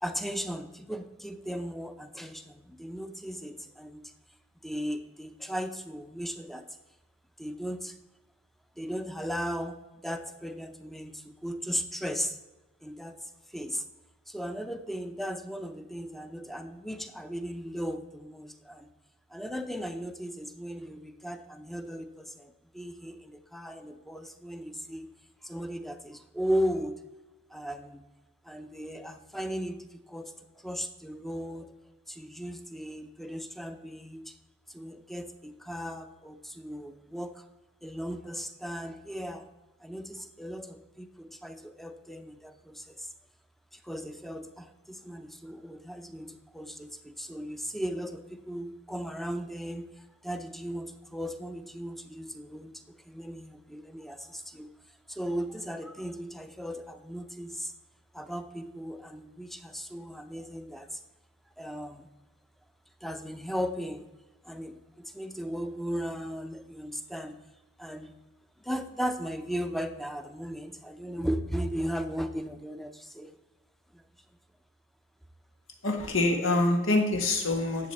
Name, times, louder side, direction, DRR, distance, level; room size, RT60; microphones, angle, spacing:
voice 1, 0.0-4.1 4.6-6.7 7.4-8.0 8.8-12.4 12.8-13.2 13.5-13.8 14.3-18.9 19.3-25.1 25.4-27.0 27.5-28.0 28.4-31.7 32.1-34.3 34.7-37.4 37.8-39.5 39.8-43.1 43.7-49.9 50.2-54.7 55.1-57.7 58.1-61.0 61.6-62.1 63.0-64.1 64.4-67.4 67.8-68.1 68.6-73.4 73.9-74.0, equal, ahead, 8 dB, 0.6 m, -36 dB
voice 2, 75.8-77.9, left 2 dB, 85° left, 4 dB, 1.7 m, -25 dB
11.0 x 7.5 x 4.3 m, 1.1 s
head